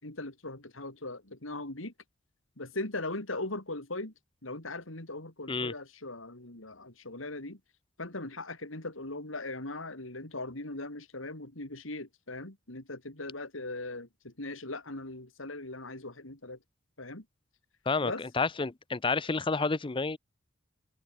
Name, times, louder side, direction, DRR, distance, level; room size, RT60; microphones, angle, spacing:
voice 1, 0.0-1.9 2.6-4.1 4.4-7.6 8.0-16.6 17.0-17.3 18.0-18.2, left 2 dB, 80° left, 4.2 m, -39 dB
voice 2, 17.9-20.2, left 4 dB, 25° left, 0.6 m, -30 dB
head